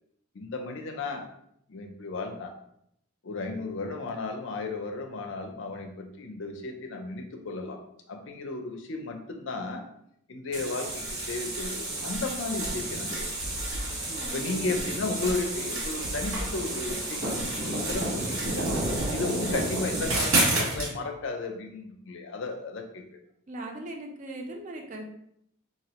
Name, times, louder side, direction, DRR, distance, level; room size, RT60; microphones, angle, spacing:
voice 1, 0.3-1.3 1.7-2.5 3.2-7.8 8.1-9.9 10.3-13.3 14.3-18.7 19.1-23.2, left 3 dB, 55° left, 4 dB, 0.5 m, -34 dB
sound 1, 10.5-20.9, right 1 dB, 80° right, 1.3 m, -30 dB
voice 2, 14.1-14.8 23.5-25.0, right 1 dB, 35° right, 1 dB, 0.4 m, -39 dB
4.0 x 2.0 x 2.9 m, 0.73 s
head